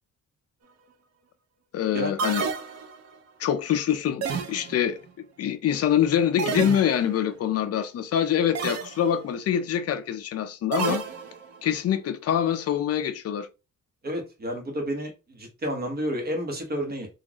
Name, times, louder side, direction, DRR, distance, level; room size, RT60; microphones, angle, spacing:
voice 1, 1.7-2.5 3.4-5.0 5.4-11.0 11.6-13.5, left 9 dB, 50° left, 0.5 m, -25 dB
sound 1, 2.2-3.2 4.2-5.0 6.4-7.3 8.6-9.1 10.7-11.6, right 5 dB, 50° right, 0.6 m, -30 dB
voice 2, 14.0-17.1, equal, 30° right, 1.1 m, -30 dB
4.0 x 2.5 x 2.9 m
wide cardioid pair, 175°, 32 cm